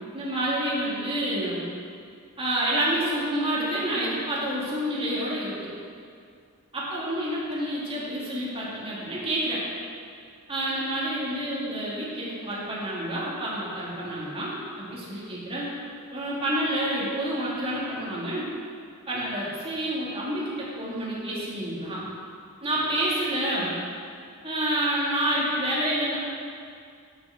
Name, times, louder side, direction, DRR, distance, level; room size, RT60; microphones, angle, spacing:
voice 1, 0.1-1.6 2.4-5.7 6.7-9.6 10.5-15.7 16.1-18.5 19.1-22.0 22.6-23.7 24.4-26.2, right 1 dB, 25° right, -7 dB, 2.2 m, -28 dB
8.8 x 7.1 x 6.4 m, 2.3 s
head